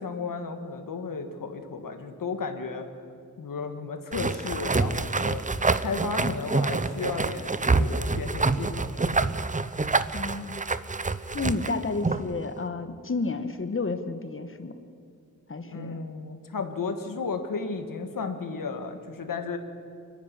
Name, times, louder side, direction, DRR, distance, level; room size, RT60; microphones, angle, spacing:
voice 1, 0.0-2.9 3.4-5.4 5.8-9.1 15.7-19.6, left 4 dB, 90° left, 6 dB, 1.9 m, -34 dB
sound 1, 4.1-12.3, right 3 dB, 25° right, 0.8 m, -27 dB
voice 2, 10.1-10.6 11.3-14.7 15.5-16.0, left 3 dB, 40° left, 10 dB, 1.3 m, -31 dB
28.5 x 10.5 x 9.9 m, 2.4 s
wide cardioid pair, 115°, 32 cm